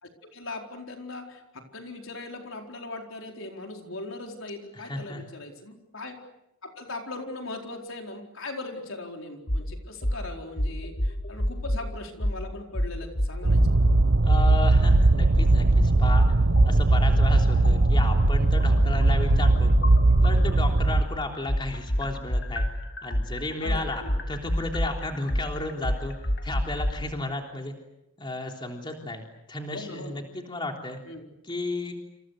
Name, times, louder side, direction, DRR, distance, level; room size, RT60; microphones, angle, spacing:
voice 1, 0.0-6.2 6.6-13.9 23.6-24.2 29.7-30.2 31.1-31.3, left 2 dB, 75° left, 2 dB, 4.5 m, -39 dB
voice 2, 4.7-5.2 14.2-16.3 16.6-19.7 20.2-22.7 23.0-26.2 26.4-27.8 28.2-31.0 31.4-31.9, left 2 dB, 25° left, 2 dB, 3.5 m, -33 dB
sound 1, 9.5-9.6 10.0-10.2 10.6-11.8 12.2-12.4 12.7-14.0 14.4-14.6 14.9-16.2 16.6-20.6 20.9-26.9, equal, 55° left, 2.5 m, -27 dB
sound 2, 13.4-21.0, right 2 dB, 65° right, 1.0 m, -20 dB
28.5 x 28.0 x 6.6 m, 0.82 s
head